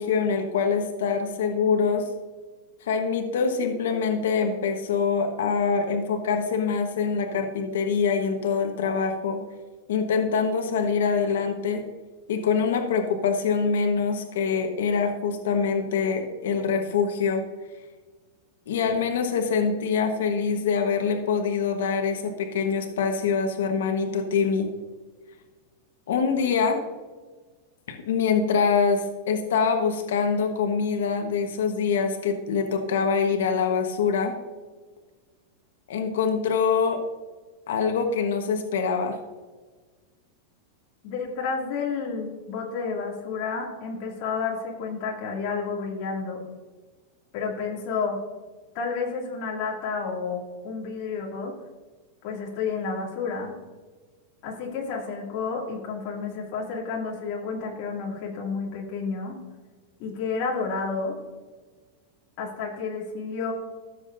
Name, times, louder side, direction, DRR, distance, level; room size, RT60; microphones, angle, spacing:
voice 1, 0.0-2.1 2.8-9.4 9.9-11.8 12.3-17.4 18.7-24.7 26.1-26.8 27.9-34.4 35.9-37.0 37.7-39.2, left 5 dB, 90° left, 4 dB, 1.2 m, -24 dB
voice 2, 41.0-46.4 47.3-48.2 48.7-51.5 52.2-53.5 54.4-59.4 60.0-61.2 62.4-63.5, left 5 dB, 35° left, -2 dB, 2.4 m, -30 dB
14.5 x 7.2 x 2.6 m, 1.3 s
supercardioid pair, 180°, 0 cm